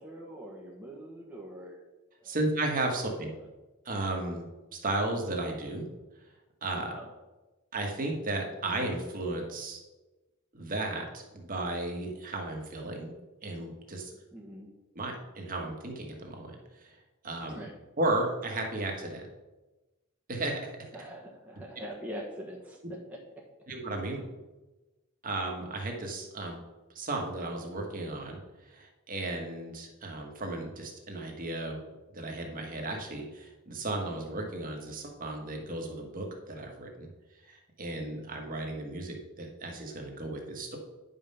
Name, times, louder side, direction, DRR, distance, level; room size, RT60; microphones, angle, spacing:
voice 1, 0.0-1.8 2.2-2.4 3.1-3.5 6.8-7.1 14.3-14.7 17.5-17.7 20.9-23.4, equal, 5° right, -3 dB, 1.3 m, -44 dB
voice 2, 2.2-3.3 3.8-4.5 4.8-5.9 6.6-6.9 7.7-9.8 10.5-13.1 13.4-14.1 14.9-17.0 17.2-17.6 18.0-19.2 20.3-20.6 23.7-24.2 25.2-26.6 26.9-31.8 32.1-37.1 37.4-40.8, right 2 dB, 40° right, 2 dB, 1.6 m, -34 dB
10.0 x 5.6 x 5.6 m, 1.1 s
head